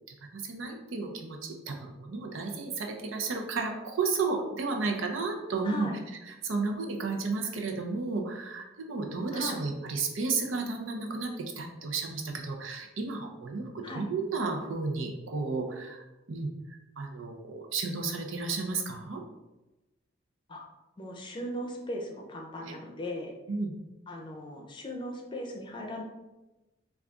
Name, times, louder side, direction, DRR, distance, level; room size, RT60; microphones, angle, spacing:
voice 1, 0.3-5.9 6.4-16.5 17.0-19.2 22.6-22.7 23.5-23.7, right 4 dB, 90° right, 2 dB, 0.6 m, -33 dB
voice 2, 5.6-6.0 9.3-9.7 13.8-14.1 20.5-20.7 21.0-23.3 24.1-26.0, left 1 dB, 25° left, 0 dB, 0.6 m, -38 dB
3.8 x 2.4 x 3.5 m, 1.0 s
head